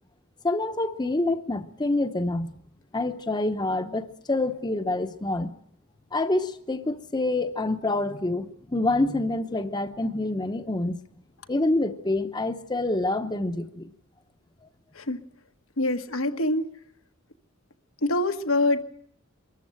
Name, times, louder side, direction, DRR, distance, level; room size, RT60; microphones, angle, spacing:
voice 1, 0.4-2.5 2.9-5.5 6.1-11.0 11.5-13.9, left 2 dB, 20° left, 0.9 m, -27 dB
voice 2, 15.8-16.7 18.0-18.8, left 2 dB, 80° left, 1.4 m, -25 dB
23.5 x 14.0 x 8.9 m
head